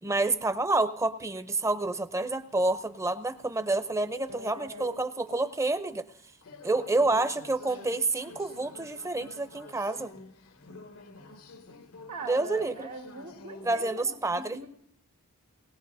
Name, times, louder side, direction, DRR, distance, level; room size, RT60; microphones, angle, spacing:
voice 1, 0.0-6.0 6.6-10.2 12.2-12.8 13.6-14.6, right 2 dB, 15° right, 11 dB, 0.6 m, -28 dB
sound 1, 2.4-13.9, left 2 dB, 80° left, 0.9 m, -50 dB
voice 2, 4.3-4.9 6.7-7.9 12.1-14.7, right 1 dB, 90° right, -3 dB, 2.3 m, -42 dB
20.0 x 17.5 x 2.7 m, 0.68 s
head